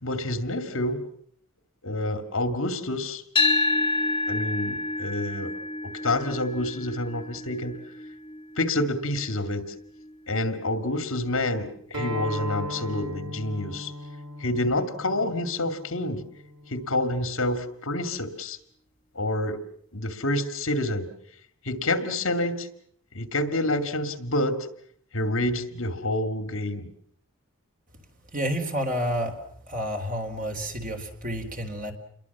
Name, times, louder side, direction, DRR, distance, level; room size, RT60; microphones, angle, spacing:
voice 1, 0.0-1.0 1.8-3.2 4.3-5.5 5.8-7.8 8.6-9.6 10.3-13.9 14.4-16.2 16.7-18.6 19.1-19.6 19.9-21.1 21.6-22.7 23.1-24.7 25.1-26.9, left 1 dB, 65° left, 9 dB, 2.5 m, -28 dB
sound 1, 3.4-11.5, left 2 dB, 20° left, 1.2 m, -30 dB
Acoustic guitar, 11.9-17.1, equal, 80° right, 3.2 m, -37 dB
voice 2, 28.3-29.4 29.7-31.9, equal, 40° right, 4 dB, 3.7 m, -29 dB
29.0 x 22.0 x 7.3 m, 0.65 s
head